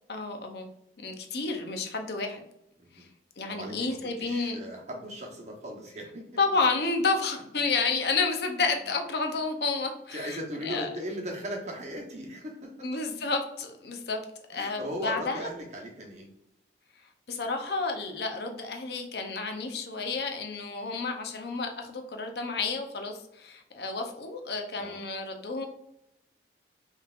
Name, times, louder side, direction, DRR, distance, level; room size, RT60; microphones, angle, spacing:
voice 1, 0.1-0.7 1.0-2.4 2.9-3.1 3.4-4.6 6.4-10.4 10.6-10.9 12.8-14.2 14.5-15.5 17.3-25.7, left 4 dB, 60° left, 4 dB, 0.7 m, -30 dB
voice 2, 3.5-6.3 10.1-12.7 14.5-16.3 24.8-25.0, equal, 40° right, 0 dB, 0.9 m, -38 dB
5.3 x 3.2 x 2.4 m, 0.79 s
head